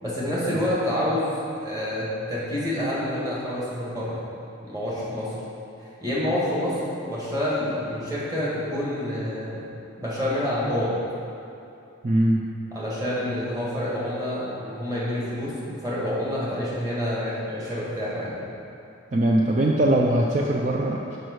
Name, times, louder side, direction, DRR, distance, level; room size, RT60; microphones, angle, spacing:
voice 1, 0.0-4.2 4.6-5.3 5.8-6.8 7.1-9.7 10.0-11.0 12.8-18.4, left 1 dB, 20° right, -8 dB, 2.0 m, -28 dB
voice 2, 12.0-12.4 19.1-21.2, right 1 dB, 35° right, -1 dB, 0.4 m, -21 dB
6.3 x 5.3 x 6.3 m, 2.7 s
head